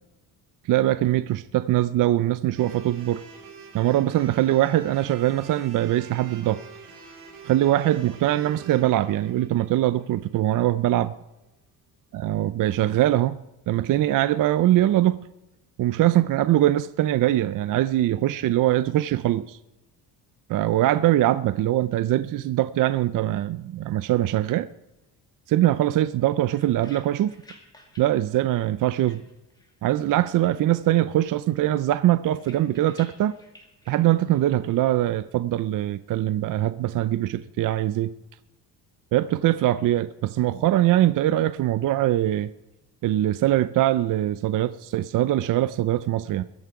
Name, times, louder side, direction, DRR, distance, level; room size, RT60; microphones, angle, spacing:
voice 1, 0.7-3.2 3.7-6.6 7.4-11.1 12.2-15.3 15.8-19.6 20.5-24.7 25.5-27.3 28.0-29.2 29.8-33.3 33.9-38.1 39.1-42.5 43.0-46.4, right 14 dB, 55° right, 0.5 m, -22 dB
sound 1, 2.6-10.7, right 5 dB, 70° right, 4.2 m, -46 dB
sound 2, 26.1-29.8 30.1-31.0 31.2-34.5, left 1 dB, 10° left, 2.1 m, -54 dB
21.5 x 10.5 x 4.7 m
cardioid pair, 170°, 40 cm